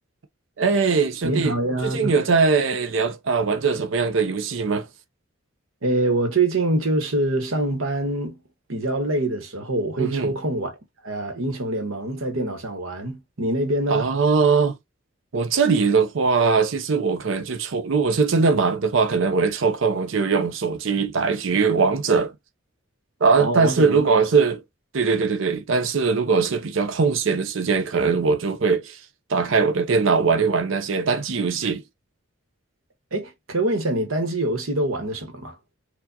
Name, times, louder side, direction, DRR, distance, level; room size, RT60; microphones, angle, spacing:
voice 1, 0.6-1.5 1.8-4.9 10.0-10.3 13.9-14.8 15.3-22.3 23.2-24.6 24.9-29.0 29.3-31.8, right 5 dB, 70° right, 0.6 m, -21 dB
voice 2, 1.2-2.2 5.8-8.4 8.7-10.7 11.0-14.1 23.4-24.1 33.1-35.5, right 2 dB, 90° right, 1.2 m, -25 dB
4.5 x 2.4 x 2.7 m
head